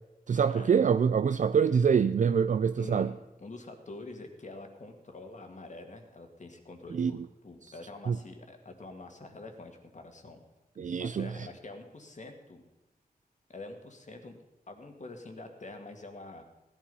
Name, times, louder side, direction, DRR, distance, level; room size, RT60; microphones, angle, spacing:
voice 1, 0.3-3.1 6.9-7.1 8.1-8.2 10.8-11.3, right 6 dB, 55° right, 0.4 m, -25 dB
voice 2, 2.8-10.4 11.0-12.6 13.5-14.4 14.7-16.4, left 2 dB, 50° left, 2.1 m, -46 dB
16.0 x 11.5 x 5.5 m
wide cardioid pair, 90°, 16 cm